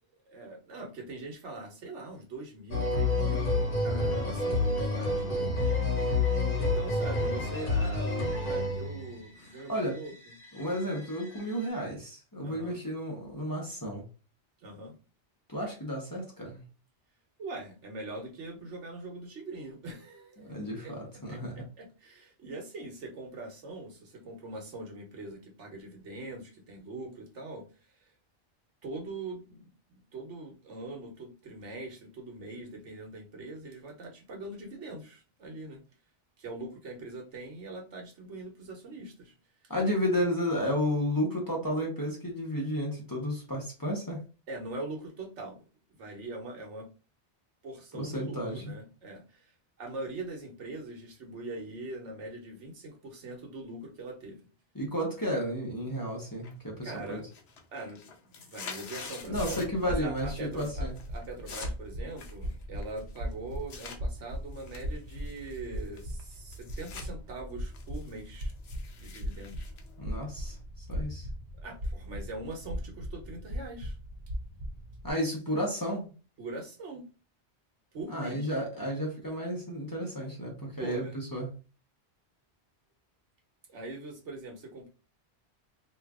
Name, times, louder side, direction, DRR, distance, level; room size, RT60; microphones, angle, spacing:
voice 1, 0.3-5.8 6.4-10.1 12.4-12.8 14.6-14.9 17.4-20.9 21.3-28.1 28.8-35.8 36.4-39.3 44.5-45.6 46.0-46.9 47.6-49.5 49.8-54.5 56.8-57.3 57.7-68.5 69.0-69.7 71.6-74.0 76.4-77.1 77.9-78.5 80.8-81.2 83.7-84.9, right 2 dB, 85° right, 1.3 m, -42 dB
sound 1, 2.7-9.2 10.1-11.3 11.6-11.7, left 2 dB, 50° left, 1.2 m, -28 dB
voice 2, 3.9-4.3 6.0-6.2 9.7-10.0 10.5-14.0 15.5-16.6 20.4-21.6 39.7-44.2 47.9-48.6 54.7-57.2 59.3-60.9 70.0-71.3 75.0-76.1 78.1-81.5, equal, 20° left, 0.9 m, -32 dB
sound 2, 56.4-56.9 57.2-59.9 60.2-60.7 61.0-64.0 64.5-67.1 67.4-70.6, left 5 dB, 75° left, 1.0 m, -46 dB
sound 3, 59.2-75.1, equal, 50° right, 0.7 m, -39 dB
2.9 x 2.5 x 3.5 m
omnidirectional pair, 1.2 m